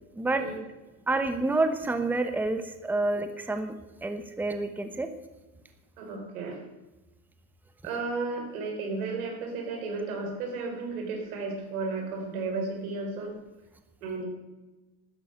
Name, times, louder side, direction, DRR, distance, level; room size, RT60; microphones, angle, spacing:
voice 1, 1.1-3.7 4.0-5.1, right 2 dB, 5° right, 7 dB, 1.0 m, -28 dB
voice 2, 6.0-6.6 7.8-13.4 14.0-14.3, right 3 dB, 90° right, 2 dB, 4.6 m, -33 dB
12.5 x 9.9 x 6.5 m, 1.1 s
supercardioid pair, 115°, 41 cm